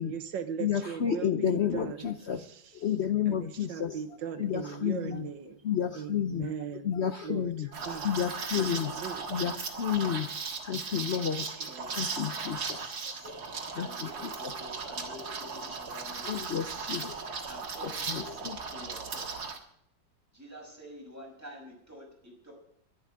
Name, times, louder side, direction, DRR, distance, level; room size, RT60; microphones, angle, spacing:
voice 1, 0.0-3.0 3.3-5.6 5.9-6.9 7.2-8.2 8.5-9.5 9.8-10.3 10.9-12.7 14.5-14.6, right 8 dB, 70° right, 10 dB, 1.8 m, -40 dB
voice 2, 0.6-2.4 2.8-4.0 4.4-5.2 5.6-6.5 6.8-7.7 8.0-8.9 9.3-9.5 9.8-10.3 10.6-11.4 11.9-12.6 13.2-13.3 13.8-13.9 16.2-17.2 18.4-18.6, left 9 dB, 80° left, 10 dB, 0.6 m, -30 dB
Liquid, 7.7-19.6, right 4 dB, 55° right, 2.1 m, -37 dB
voice 3, 10.0-10.3 11.6-12.3 13.7-16.2 17.5-18.3 18.7-19.4 20.3-22.5, equal, 10° right, -2 dB, 5.8 m, -48 dB
11.0 x 11.0 x 8.5 m, 0.70 s
omnidirectional pair, 2.1 m